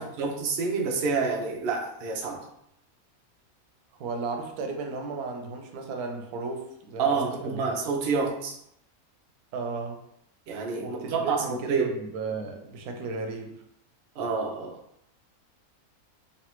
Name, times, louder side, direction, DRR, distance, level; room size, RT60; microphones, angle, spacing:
voice 1, 0.0-2.5 7.0-8.6 10.5-11.9 14.2-14.8, right 4 dB, 60° right, 1 dB, 0.6 m, -28 dB
voice 2, 3.9-7.6 9.5-10.0 10.8-13.6, right 3 dB, 85° right, 3 dB, 1.1 m, -35 dB
3.2 x 2.5 x 2.9 m, 0.74 s
omnidirectional pair, 1.5 m